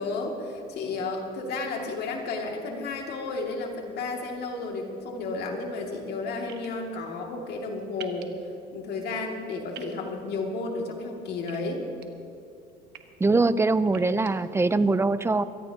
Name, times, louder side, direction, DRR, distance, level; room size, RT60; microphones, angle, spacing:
voice 1, 0.0-8.3 8.7-11.8, left 3 dB, 75° left, 1 dB, 2.4 m, -32 dB
sound 1, 6.5-6.7 8.0-8.2 9.7-9.9 11.5-12.1 12.7-13.0 13.9-14.3, right 11 dB, 75° right, 1.3 m, -44 dB
voice 2, 13.2-15.4, right 3 dB, 15° right, 14 dB, 0.5 m, -22 dB
24.0 x 17.0 x 2.9 m, 2.6 s
cardioid pair, 110°, 17 cm